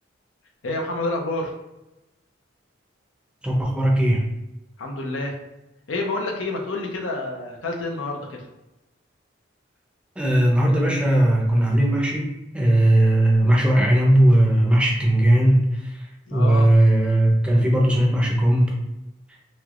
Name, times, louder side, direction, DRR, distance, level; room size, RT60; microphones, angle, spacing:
voice 1, 0.6-1.5 4.8-5.4 5.9-8.4 16.3-16.7, left 2 dB, 80° left, 1 dB, 0.6 m, -28 dB
voice 2, 3.4-4.2 10.2-15.9 16.3-18.7, right 1 dB, 5° right, -2 dB, 0.5 m, -18 dB
3.1 x 2.9 x 2.4 m, 0.97 s
head